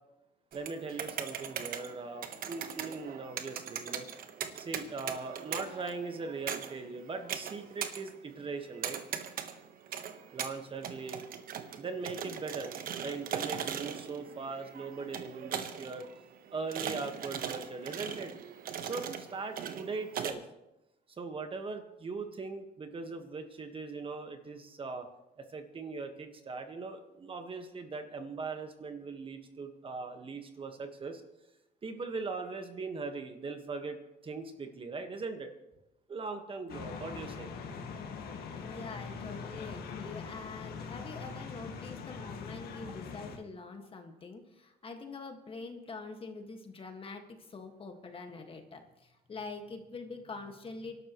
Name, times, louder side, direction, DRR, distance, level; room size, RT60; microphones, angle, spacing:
voice 1, 0.5-4.1 4.6-9.0 10.3-11.2 11.8-16.1 16.5-18.3 18.8-20.4 21.1-25.1 25.4-31.2 31.8-34.0 34.2-35.5 36.1-37.5, right 4 dB, 30° right, 6 dB, 1.5 m, -40 dB
sound 1, 0.5-20.3, right 8 dB, 60° right, 1.3 m, -40 dB
sound 2, 36.7-43.4, left 5 dB, 65° left, 2.0 m, -42 dB
voice 2, 38.5-51.0, left 3 dB, 30° left, 5 dB, 1.8 m, -45 dB
26.5 x 12.0 x 3.1 m, 0.93 s
cardioid pair, 110°, 17 cm